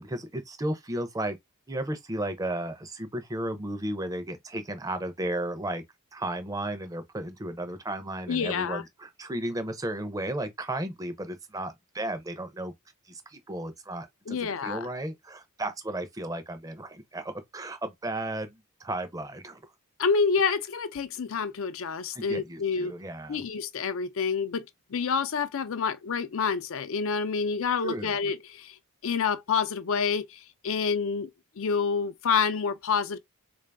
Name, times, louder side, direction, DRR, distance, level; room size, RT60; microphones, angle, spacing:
voice 1, 0.0-1.4 1.7-5.8 6.1-12.7 13.1-19.6 22.1-23.4 27.8-28.2, right 1 dB, 15° right, 0.6 m, -34 dB
voice 2, 8.3-8.8 14.3-14.8 20.0-22.9 23.3-24.6 24.9-28.7 29.0-31.3 31.6-33.2, left 5 dB, 60° left, 0.5 m, -28 dB
3.7 x 2.5 x 3.4 m
head